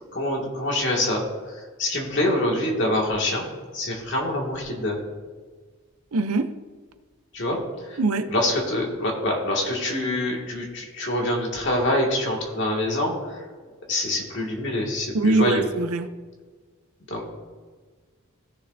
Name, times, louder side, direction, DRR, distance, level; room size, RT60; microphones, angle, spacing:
voice 1, 0.1-1.2 1.8-3.5 3.7-5.0 7.3-7.6 7.9-8.0 8.3-13.4 13.9-15.6 17.1-17.3, left 1 dB, 55° left, -1 dB, 2.1 m, -25 dB
voice 2, 6.1-6.5 8.0-8.3 15.1-16.1, right 3 dB, 80° right, 10 dB, 0.6 m, -22 dB
16.0 x 6.6 x 2.7 m, 1.5 s
head